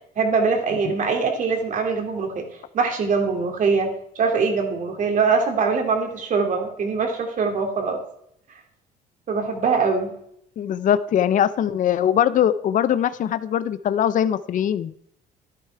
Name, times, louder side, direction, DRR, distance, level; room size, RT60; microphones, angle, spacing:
voice 1, 0.2-2.4 2.7-8.0 9.3-10.1, right 5 dB, 50° right, 4 dB, 3.0 m, -22 dB
voice 2, 10.6-14.9, left 9 dB, 50° left, 14 dB, 0.7 m, -21 dB
12.5 x 11.0 x 4.7 m, 0.71 s
cardioid pair, 110°, 17 cm